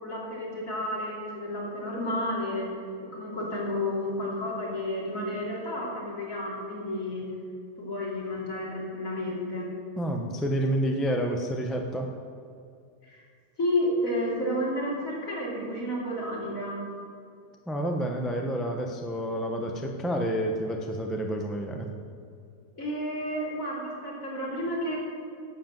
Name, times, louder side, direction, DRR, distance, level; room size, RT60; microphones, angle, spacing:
voice 1, 0.0-2.7 3.1-7.3 7.8-9.7 13.0-13.2 13.6-16.8 22.8-25.0, left 1 dB, 50° left, -5 dB, 3.6 m, -31 dB
voice 2, 10.0-12.1 17.7-21.9, right 1 dB, ahead, 2 dB, 0.5 m, -29 dB
11.5 x 7.9 x 7.4 m, 2.3 s
omnidirectional pair, 1.9 m